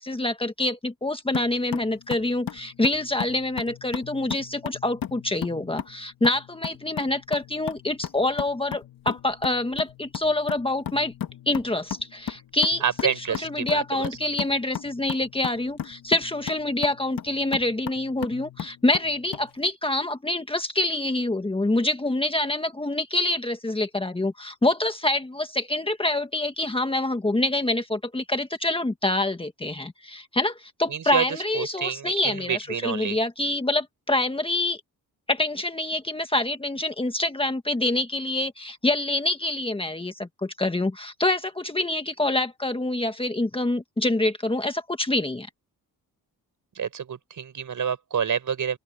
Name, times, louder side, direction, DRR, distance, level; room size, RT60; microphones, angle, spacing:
voice 1, 0.0-11.1 11.5-13.1 13.4-34.8 35.3-45.5, left 2 dB, 15° left, 1.6 m, -26 dB
sound 1, 1.3-19.5, left 9 dB, 65° left, 2.0 m, -36 dB
voice 2, 12.8-14.1 30.9-33.2 46.7-48.8, right 7 dB, 55° right, 5.8 m, -28 dB
open air
cardioid pair, 120°, 37 cm